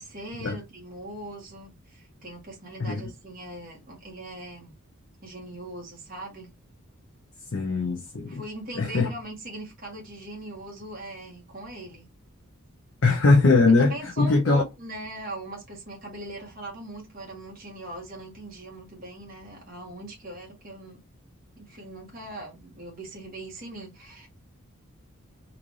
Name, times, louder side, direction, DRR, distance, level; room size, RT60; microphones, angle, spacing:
voice 1, 0.0-4.8 5.2-6.5 8.3-12.1 13.8-21.1 21.6-24.3, right 1 dB, 40° right, 1.5 m, -40 dB
voice 2, 7.5-8.4 8.7-9.1 13.0-14.6, left 3 dB, 55° left, 0.6 m, -21 dB
3.8 x 2.5 x 3.1 m
head